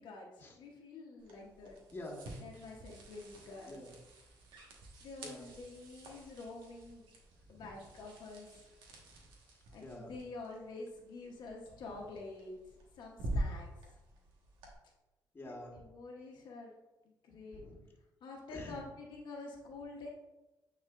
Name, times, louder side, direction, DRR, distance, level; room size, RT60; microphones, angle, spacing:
voice 1, 0.0-1.8 2.4-3.8 5.0-7.0 7.5-8.5 9.7-12.6 13.0-13.7 15.7-16.7 17.2-17.6 18.2-20.1, left 3 dB, 70° left, -1 dB, 1.0 m, -48 dB
sound 1, 1.2-14.7, right 1 dB, 80° right, 1.4 m, -47 dB
voice 2, 1.9-2.2 3.7-3.9 5.2-5.5 7.5-7.6 9.1-10.1 15.3-15.8 17.5-17.8 18.5-18.8, left 1 dB, 25° left, 0 dB, 1.4 m, -48 dB
9.1 x 4.2 x 2.5 m, 1.0 s
cardioid pair, 105°, 8 cm